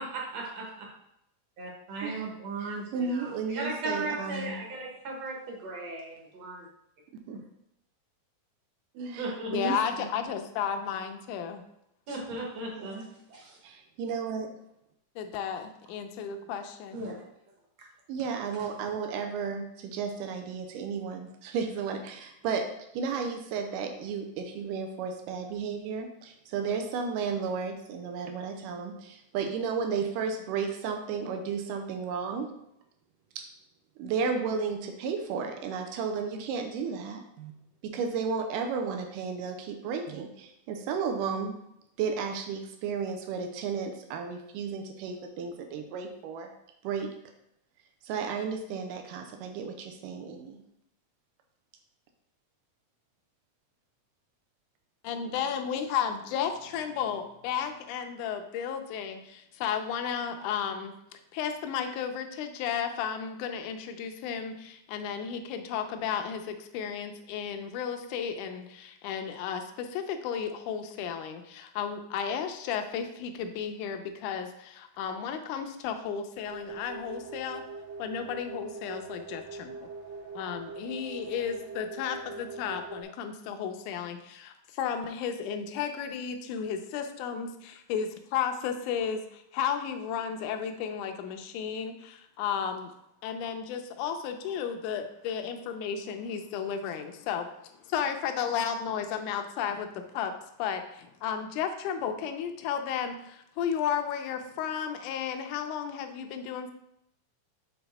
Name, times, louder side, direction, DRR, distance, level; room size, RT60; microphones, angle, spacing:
voice 1, 0.3-0.6 1.6-6.6 9.2-9.5 12.1-13.6 16.9-17.1, right 2 dB, 60° right, -1 dB, 2.0 m, -36 dB
voice 2, 2.6-4.6 7.3-7.4 9.0-9.3 9.5-10.1 12.7-13.1 13.6-14.5 18.1-22.6 22.9-32.5 33.4-33.5 34.0-37.5 37.8-41.5 42.0-46.5 46.8-47.1 48.0-50.6, right 5 dB, 90° right, 4 dB, 2.3 m, -33 dB
voice 3, 9.5-11.6 15.2-17.0 55.0-77.6 78.0-79.9 80.4-92.9 93.2-97.5 97.8-100.3 100.6-106.7, left 7 dB, 80° left, 6 dB, 2.0 m, -33 dB
sound 1, 76.4-83.0, right 4 dB, 25° right, 0.7 m, -42 dB
6.9 x 3.9 x 4.1 m, 0.80 s
omnidirectional pair, 3.8 m